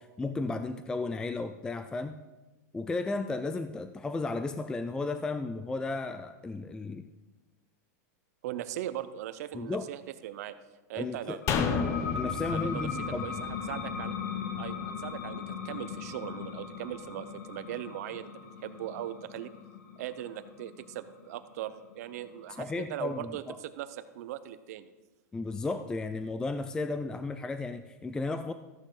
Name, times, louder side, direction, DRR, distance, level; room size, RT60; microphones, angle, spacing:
voice 1, 0.0-2.2 2.7-7.1 9.5-9.9 11.0-11.4 12.2-13.3 22.6-23.6 25.3-28.5, left 3 dB, 10° left, 9 dB, 0.3 m, -34 dB
voice 2, 8.4-10.6 10.9-11.4 12.5-12.9 13.2-13.3 13.7-14.1 14.6-19.5 20.0-24.9, right 12 dB, 65° right, 12 dB, 0.8 m, -39 dB
sound 1, 11.4-22.7, left 7 dB, 90° left, 1.7 m, -39 dB
sound 2, 11.5-14.8 15.1-15.2, left 6 dB, 35° left, 0.9 m, -32 dB
14.0 x 9.1 x 3.8 m, 1.1 s
supercardioid pair, 140°, 9 cm